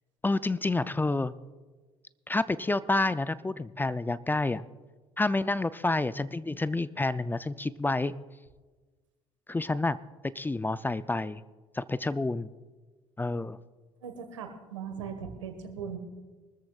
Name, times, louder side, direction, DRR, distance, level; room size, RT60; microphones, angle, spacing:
voice 1, 0.2-1.3 2.3-4.6 5.2-8.1 9.5-10.0 10.4-11.4 11.7-12.5 13.2-13.6, left 2 dB, 15° left, 16 dB, 0.5 m, -29 dB
voice 2, 14.0-16.0, right 7 dB, 85° right, 6 dB, 1.5 m, -39 dB
23.0 x 14.0 x 2.4 m, 1.3 s
hypercardioid pair, 60°, 16 cm